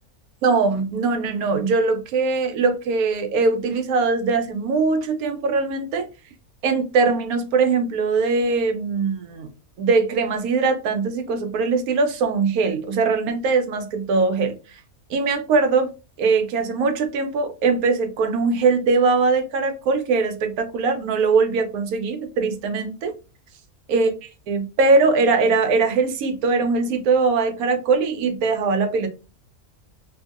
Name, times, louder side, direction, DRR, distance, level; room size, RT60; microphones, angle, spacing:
voice 1, 0.4-6.1 6.6-9.5 9.8-14.5 15.1-15.9 16.2-23.1 23.9-29.1, right 4 dB, 85° right, 1.1 m, -21 dB
2.7 x 2.6 x 2.4 m
omnidirectional pair, 1.5 m